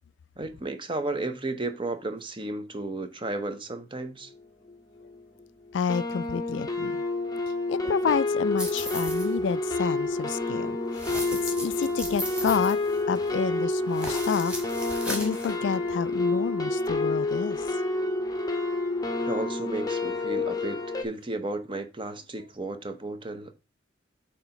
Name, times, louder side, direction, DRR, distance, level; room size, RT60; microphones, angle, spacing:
voice 1, 0.4-4.3 19.2-23.5, right 2 dB, 25° right, 0.8 m, -33 dB
sound 1, 4.7-4.8 5.0-5.4 5.9-21.0, left 2 dB, 20° left, 0.8 m, -29 dB
voice 2, 5.7-7.0 7.7-12.8 13.1-17.8, left 6 dB, 65° left, 0.3 m, -30 dB
sound 2, 8.6-9.3 10.9-13.3 13.9-15.5, equal, 5° right, 1.9 m, -36 dB
8.1 x 3.0 x 5.6 m
head